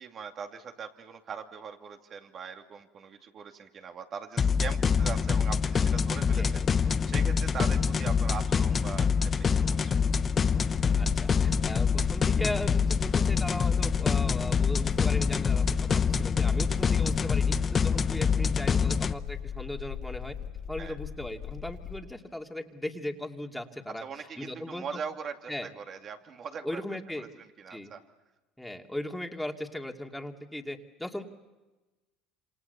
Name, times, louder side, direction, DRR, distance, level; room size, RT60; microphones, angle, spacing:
voice 1, 0.0-6.4 6.8-9.9 20.8-21.0 24.0-26.8 27.2-28.0, right 6 dB, 45° right, 5 dB, 2.5 m, -41 dB
sound 1, 4.4-19.1, left 6 dB, 35° left, 0.9 m, -25 dB
voice 2, 6.4-6.7 10.9-20.3 20.7-24.9 25.5-25.7 26.6-27.3 27.7-27.9 28.6-31.2, left 1 dB, 5° left, 2 dB, 2.5 m, -38 dB
Shaking a Table, 10.7-22.0, left 9 dB, 65° left, 1.9 m, -39 dB
27.5 x 27.0 x 6.9 m, 1.1 s
supercardioid pair, 90°, 0 cm